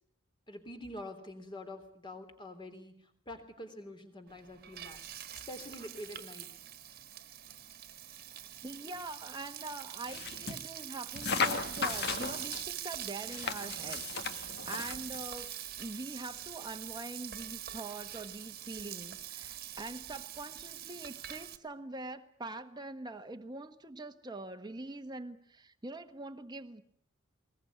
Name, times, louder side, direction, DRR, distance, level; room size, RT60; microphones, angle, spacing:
voice 1, 0.5-5.0 5.3-6.5, left 1 dB, 20° left, 7 dB, 3.4 m, -46 dB
Frying (food), 4.3-21.6, right 11 dB, 45° right, 1.7 m, -44 dB
voice 2, 8.6-15.5 15.8-26.8, right 2 dB, 20° right, 6 dB, 1.3 m, -44 dB
sound 1, 10.1-10.6 11.1-12.6 13.3-15.2, left 5 dB, 50° left, 1.8 m, -36 dB
21.0 x 20.0 x 9.5 m, 0.65 s
head